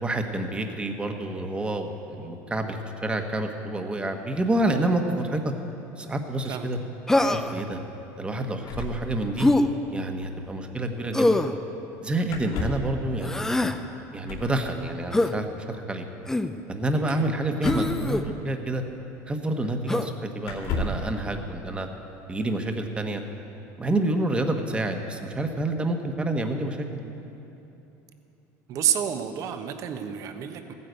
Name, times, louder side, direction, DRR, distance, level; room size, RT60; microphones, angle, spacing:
voice 1, 0.0-5.5 6.0-6.8 7.3-7.8 8.2-9.5 9.9-11.4 12.0-13.5 14.1-16.0 16.7-18.8 19.3-21.9 22.3-23.2 23.8-26.9, right 1 dB, 15° right, 5 dB, 1.2 m, -28 dB
Human voice, 7.1-7.6 9.4-9.7 11.1-11.6 13.2-13.8 15.1-15.3 16.3-16.6 17.6-18.2 19.9-20.1, left 2 dB, 5° left, 0.6 m, -23 dB
sound 1, 8.6-9.7 10.0-10.1 10.2-10.4 12.3-13.0 14.2-14.6 17.6-18.7 19.6-19.7 20.4-21.1, left 2 dB, 70° left, 2.6 m, -33 dB
voice 2, 28.7-30.7, right 9 dB, 50° right, 7 dB, 1.1 m, -29 dB
15.0 x 9.6 x 8.0 m, 3.0 s
cardioid pair, 125°, 7 cm